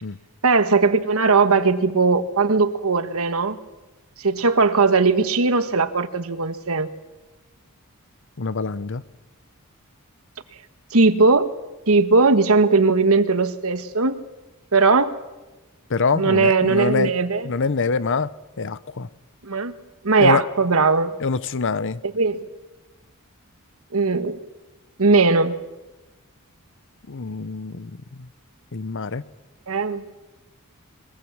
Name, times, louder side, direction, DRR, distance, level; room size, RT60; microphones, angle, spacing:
voice 1, 0.4-3.6 4.2-6.9 10.9-11.5 11.9-14.2 14.7-15.1 16.1-17.5 19.4-19.7 20.0-21.1 22.1-22.4 23.9-24.4 25.0-25.6 29.7-30.0, right 4 dB, 70° right, 1.4 m, -18 dB
voice 2, 8.4-9.0 15.9-17.1 17.4-18.3 18.6-19.1 20.2-20.4 21.2-22.0 27.1-28.3 28.7-29.2, left 4 dB, 60° left, 0.8 m, -25 dB
22.5 x 21.5 x 7.4 m
head